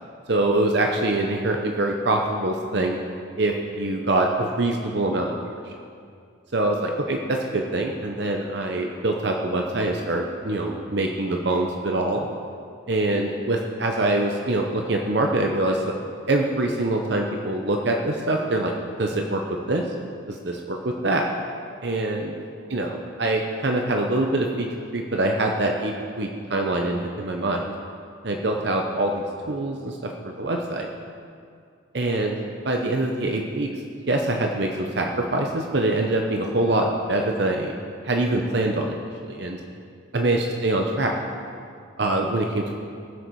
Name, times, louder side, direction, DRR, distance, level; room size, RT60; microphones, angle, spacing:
voice 1, 0.3-3.0 3.4-5.8 6.5-12.3 12.9-15.9 16.3-18.7 19.0-19.9 20.3-21.3 21.8-22.4 22.7-24.7 24.9-27.7 28.2-30.9 31.9-32.4 32.6-33.7 34.1-37.8 38.0-39.6 40.1-41.2 42.0-42.8, right 2 dB, 55° right, 2 dB, 0.8 m, -24 dB
19.5 x 6.6 x 4.7 m, 2.4 s
head